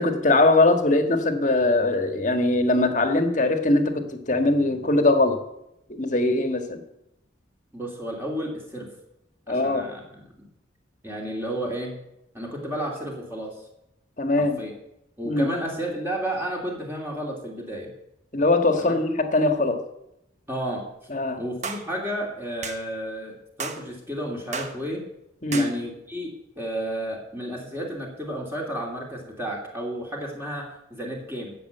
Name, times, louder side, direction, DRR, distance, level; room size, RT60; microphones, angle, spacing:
voice 1, 0.0-5.4 5.9-6.8 9.5-9.9 14.2-14.6 15.2-15.5 18.3-19.8 21.1-21.4 25.4-25.7, left 2 dB, 40° left, 1.5 m, -21 dB
voice 2, 7.7-8.9 9.5-10.2 11.0-12.0 12.3-13.6 14.4-14.7 15.2-17.9 18.8-18.9 20.5-20.9 21.4-25.0 25.5-31.5, right 1 dB, 10° right, 2.6 m, -32 dB
sound 1, 21.6-21.9 22.6-22.8 23.6-23.8 24.5-24.8 25.5-25.7, right 5 dB, 40° right, 1.2 m, -32 dB
16.0 x 6.8 x 7.9 m
head